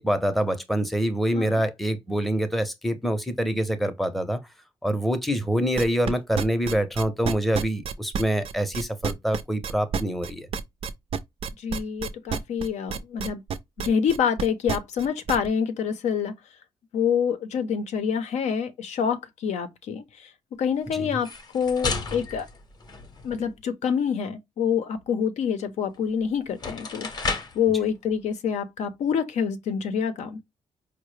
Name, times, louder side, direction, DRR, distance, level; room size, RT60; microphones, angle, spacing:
voice 1, 0.0-4.4 4.8-10.5, right 1 dB, ahead, 0.6 m, -25 dB
sound 1, 5.8-15.5, right 6 dB, 55° right, 0.4 m, -30 dB
voice 2, 11.6-13.4 13.8-16.3 16.9-20.3 20.6-22.5 23.2-30.4, left 7 dB, 80° left, 0.6 m, -27 dB
sound 2, 21.1-23.5 25.9-26.0 26.5-27.7, left 4 dB, 35° left, 0.7 m, -33 dB
4.6 x 2.1 x 3.1 m
cardioid pair, 120°, 12 cm